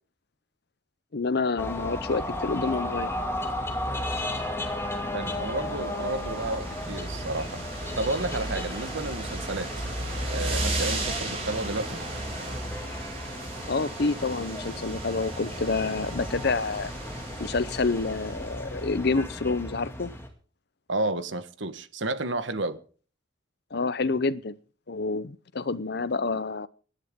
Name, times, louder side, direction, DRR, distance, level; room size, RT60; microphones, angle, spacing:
voice 1, 1.1-3.1 13.7-16.9 17.4-20.1 23.7-24.6 24.9-26.7, left 3 dB, 55° left, 0.7 m, -28 dB
sound 1, 1.6-20.3, left 1 dB, 15° left, 2.3 m, -34 dB
voice 2, 5.1-7.6 7.9-9.7 10.3-12.0 20.9-22.8, right 2 dB, 70° right, 1.3 m, -31 dB
sound 2, 5.5-18.7, right 3 dB, 30° right, 6.6 m, -38 dB
24.0 x 11.0 x 3.7 m
head